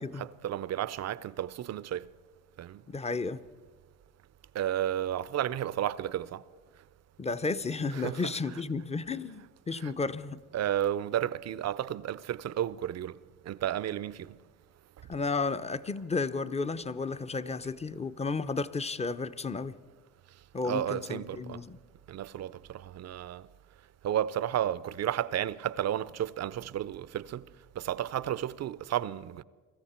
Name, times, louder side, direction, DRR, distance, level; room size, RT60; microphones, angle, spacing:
voice 1, 0.2-2.1 2.6-2.8 4.5-6.4 7.9-8.6 9.8-9.9 10.5-13.2 13.4-14.3 20.6-21.6 22.1-23.5 24.0-27.4 27.8-29.4, right 11 dB, 45° right, 0.6 m, -32 dB
voice 2, 2.9-3.4 7.2-10.4 15.1-19.8 20.5-21.8, left 4 dB, 20° left, 0.7 m, -33 dB
23.0 x 13.5 x 4.4 m
supercardioid pair, 70°, 36 cm